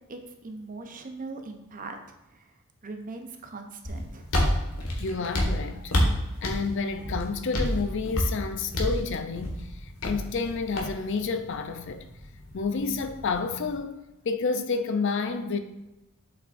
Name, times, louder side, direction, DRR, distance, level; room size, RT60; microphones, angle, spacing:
voice 1, 0.1-2.0 2.3-2.5 2.8-4.8, right 3 dB, 40° right, 0.8 m, -41 dB
sound 1, 3.8-13.7, equal, 75° left, 1.6 m, -30 dB
voice 2, 5.0-6.0 6.4-12.1 12.5-14.0 14.2-15.6, left 4 dB, 55° left, 0.5 m, -30 dB
7.3 x 5.8 x 2.6 m
head